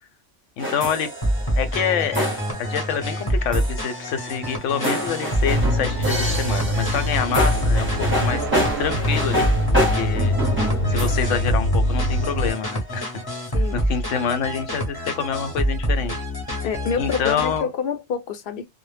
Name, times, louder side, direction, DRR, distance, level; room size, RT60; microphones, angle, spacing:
voice 1, 0.6-1.1 1.6-2.3 2.6-8.4 8.8-9.5 9.9-10.3 10.9-13.1 13.5-16.2 16.9-17.7, left 7 dB, 90° left, 0.9 m, -26 dB
sound 1, 0.6-12.4, equal, 15° right, 0.6 m, -28 dB
sound 2, 1.2-17.6, equal, 25° left, 0.7 m, -26 dB
sound 3, 5.4-12.5, left 1 dB, 65° right, 0.7 m, -24 dB
voice 2, 16.6-18.7, left 6 dB, 60° left, 0.7 m, -27 dB
2.1 x 2.0 x 3.2 m
omnidirectional pair, 1.2 m